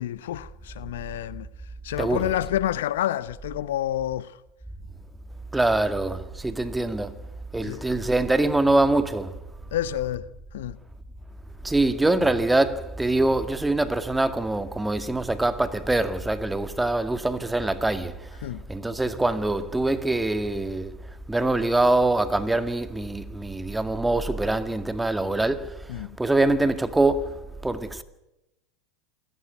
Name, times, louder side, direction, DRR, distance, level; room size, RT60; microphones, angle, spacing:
voice 1, 0.0-1.5 1.8-4.3 7.6-7.8 9.7-10.3 10.5-10.8 18.4-18.6 25.9-26.2, left 12 dB, 70° left, 0.8 m, -29 dB
voice 2, 5.5-7.1 7.5-9.4 11.6-28.0, right 2 dB, 10° right, 2.0 m, -24 dB
27.5 x 18.0 x 9.4 m
figure-of-eight pair, 85°, 0 cm